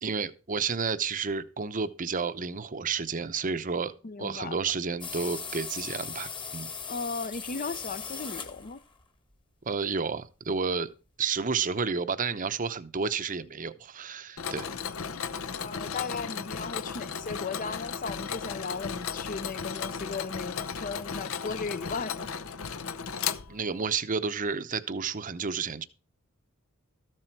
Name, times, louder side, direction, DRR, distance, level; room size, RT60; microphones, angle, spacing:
voice 1, 0.0-6.7 9.6-10.9 11.2-14.7 23.5-25.8, right 5 dB, 40° right, 0.8 m, -31 dB
voice 2, 4.0-4.6 6.9-8.8 15.5-22.4, left 4 dB, 40° left, 0.6 m, -36 dB
sound 1, 5.0-9.0, left 5 dB, 25° left, 1.4 m, -38 dB
Mechanisms, 14.4-23.9, left 6 dB, 70° left, 0.8 m, -35 dB
14.0 x 7.6 x 4.6 m
head